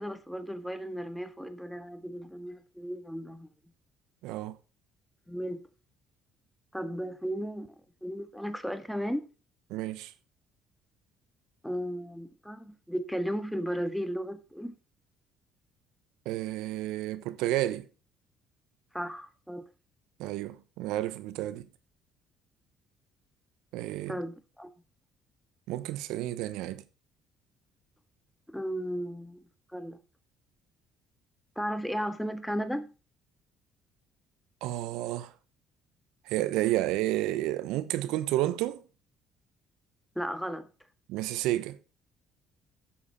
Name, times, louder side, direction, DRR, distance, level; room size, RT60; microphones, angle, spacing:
voice 1, 0.0-3.5 5.3-5.6 6.7-7.7 8.0-9.2 11.6-14.7 18.9-19.6 24.1-24.7 28.5-29.4 29.7-30.0 31.5-32.9 40.1-40.7, equal, ahead, 1.7 m, -35 dB
voice 2, 4.2-4.6 9.7-10.1 16.2-17.9 20.2-21.7 23.7-24.2 25.7-26.8 34.6-35.3 36.3-38.8 41.1-41.8, right 15 dB, 80° right, 1.0 m, -31 dB
12.0 x 7.3 x 4.1 m
supercardioid pair, 65°, 0 cm